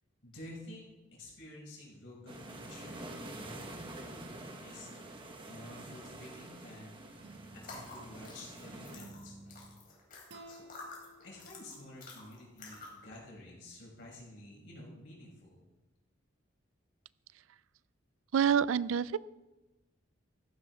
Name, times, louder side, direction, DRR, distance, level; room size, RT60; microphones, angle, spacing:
voice 1, 0.2-4.9 5.5-7.0 7.5-9.4 11.2-15.7, left 1 dB, 65° left, -4 dB, 5.8 m, -51 dB
sound 1, 2.3-9.0, right 1 dB, 25° right, 1.4 m, -47 dB
sound 2, 7.1-8.4 8.9-9.8 10.3-12.5, right 1 dB, 60° right, 1.5 m, -54 dB
sound 3, 7.5-13.1, left 3 dB, 45° left, 4.5 m, -50 dB
voice 2, 18.3-19.2, right 8 dB, 85° right, 20 dB, 0.4 m, -27 dB
15.5 x 14.5 x 3.6 m, 1.1 s
head